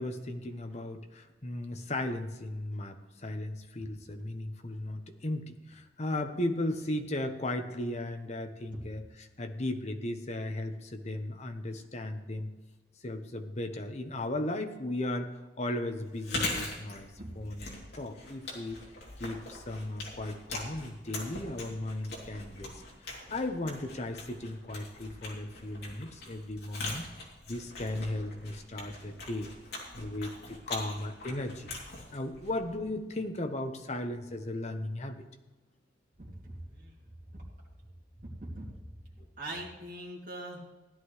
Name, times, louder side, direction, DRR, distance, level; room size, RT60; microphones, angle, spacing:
voice 1, 0.0-12.5 13.0-18.8 19.2-27.0 27.5-29.5 29.9-31.7 32.1-35.2, left 1 dB, 40° left, 6 dB, 1.0 m, -36 dB
Chewing mastication, 16.1-33.0, left 2 dB, 60° left, 3.0 m, -42 dB
voice 2, 36.2-36.9 37.3-37.4 38.4-38.7 39.4-40.7, right 1 dB, 50° right, -5 dB, 2.6 m, -42 dB
16.0 x 11.0 x 3.2 m, 1.2 s
head